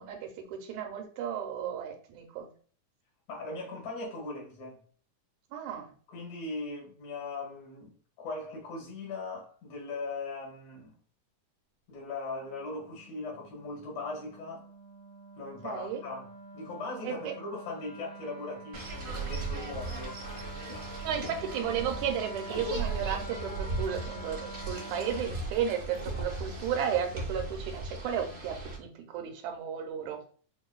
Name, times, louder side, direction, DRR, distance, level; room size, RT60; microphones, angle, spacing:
voice 1, 0.0-2.5 5.5-5.9 15.6-16.0 17.0-17.3 21.0-30.3, right 8 dB, 80° right, 2.0 m, -34 dB
voice 2, 3.3-4.8 6.1-11.0 11.9-14.7 15.4-16.3 16.5-21.1, left 3 dB, 80° left, 3.1 m, -39 dB
Wind instrument woodwind instrument, 12.4-25.3, right 3 dB, 50° left, 2.2 m, -46 dB
sound 1, 18.7-28.8, right 2 dB, 65° right, 0.6 m, -37 dB
6.1 x 2.6 x 2.3 m
omnidirectional pair, 3.4 m